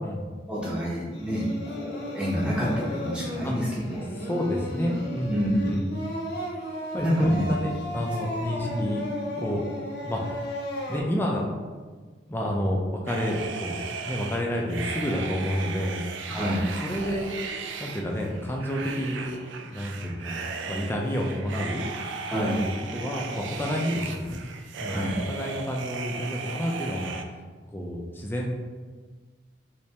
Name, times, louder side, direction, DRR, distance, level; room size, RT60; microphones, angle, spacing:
voice 1, 0.5-4.1 5.3-5.7 7.0-7.5 8.6-8.8 16.3-16.6 22.3-22.6 24.9-25.1, equal, 5° right, -9 dB, 0.9 m, -27 dB
Singing, 1.1-11.0, left 1 dB, 60° left, 0.6 m, -35 dB
voice 2, 4.2-5.9 6.9-9.1 9.3-9.6 10.0-10.4 10.9-11.4 12.3-13.7 14.1-16.5 16.8-17.3 17.8-19.4 19.6-21.8 22.6-24.4 24.8-27.1 27.7-28.5, equal, 10° left, -1 dB, 0.4 m, -30 dB
sound 1, 13.1-27.2, right 4 dB, 85° right, 0.3 m, -36 dB
3.2 x 3.2 x 2.8 m, 1.4 s
head